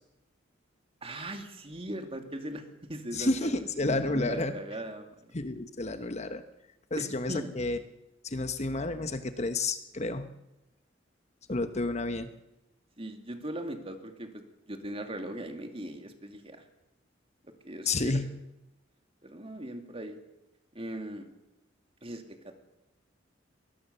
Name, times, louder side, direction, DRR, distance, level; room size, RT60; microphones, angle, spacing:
voice 1, 1.0-5.3 7.0-7.5 13.0-16.6 17.6-18.2 19.2-20.2 20.7-21.3 22.0-22.5, right 1 dB, 30° right, 6 dB, 2.6 m, -39 dB
voice 2, 3.1-4.6 5.3-6.4 6.9-7.8 8.2-10.3 11.5-12.3 17.9-18.2, left 2 dB, 35° left, 9 dB, 1.1 m, -30 dB
23.0 x 19.5 x 6.9 m, 0.94 s
head